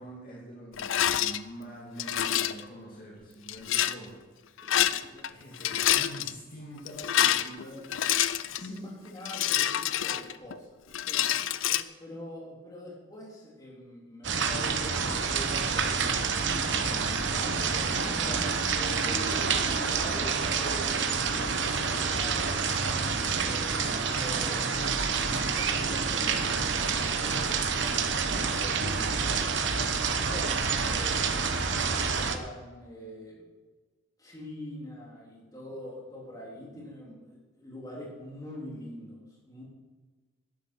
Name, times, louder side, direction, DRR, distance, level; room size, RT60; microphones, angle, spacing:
voice 1, 0.0-4.7 4.9-8.2 8.6-8.9 30.7-31.0, right 1 dB, 45° left, -4 dB, 2.5 m, -45 dB
Rattle, 0.8-1.4 2.0-2.6 3.5-4.0 4.6-5.3 5.5-6.3 6.9-8.7 9.3-10.6 10.9-11.8, left 11 dB, 70° left, 0.5 m, -27 dB
voice 2, 8.5-11.2 11.6-17.0 17.4-24.9 25.5-27.9 28.2-29.4 30.1-30.5 30.8-33.3 34.2-39.2 39.5-39.6, equal, 20° left, -4 dB, 3.6 m, -44 dB
sound 1, 14.2-32.4, right 5 dB, 60° right, 1.0 m, -28 dB
11.0 x 10.0 x 6.2 m, 1.3 s
head